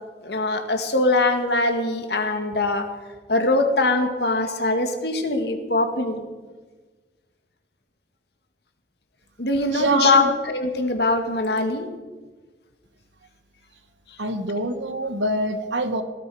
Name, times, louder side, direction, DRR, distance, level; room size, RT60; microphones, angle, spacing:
voice 1, 0.2-2.9 3.3-6.3 9.4-11.9, left 2 dB, 65° left, 6 dB, 2.0 m, -22 dB
voice 2, 9.7-10.4 14.2-16.0, right 2 dB, 85° right, 9 dB, 1.5 m, -25 dB
18.0 x 13.0 x 4.9 m, 1.3 s
head